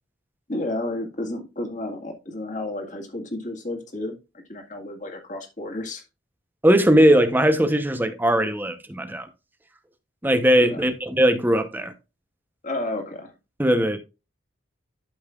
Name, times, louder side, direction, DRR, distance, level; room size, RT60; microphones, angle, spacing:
voice 1, 0.5-4.2 4.5-6.0 10.6-10.8 12.6-13.3, left 1 dB, 40° left, 1.9 m, -31 dB
voice 2, 6.6-9.3 10.2-11.9 13.6-14.0, equal, 10° right, 0.8 m, -19 dB
12.0 x 5.4 x 2.4 m
head